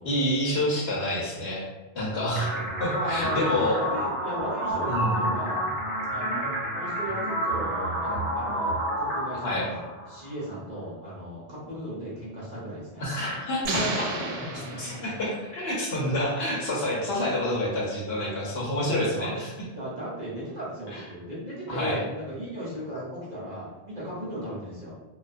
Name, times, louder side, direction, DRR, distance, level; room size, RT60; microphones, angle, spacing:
voice 1, 0.0-1.6 1.9-3.8 4.9-5.2 9.4-9.7 13.0-13.8 14.8-19.5 20.9-21.0 21.7-22.0, left 1 dB, 65° left, -4 dB, 0.9 m, -28 dB
sound 1, 2.4-10.3, equal, 60° right, 1.1 m, -29 dB
voice 2, 2.9-3.4 3.7-5.6 6.1-9.8 10.1-13.1 13.6-15.0 18.9-19.3 19.6-24.9, right 1 dB, 45° right, -8 dB, 0.8 m, -36 dB
sound 2, 13.6-15.5, right 3 dB, 80° right, 0.9 m, -33 dB
2.4 x 2.3 x 2.4 m, 1.1 s
omnidirectional pair, 1.2 m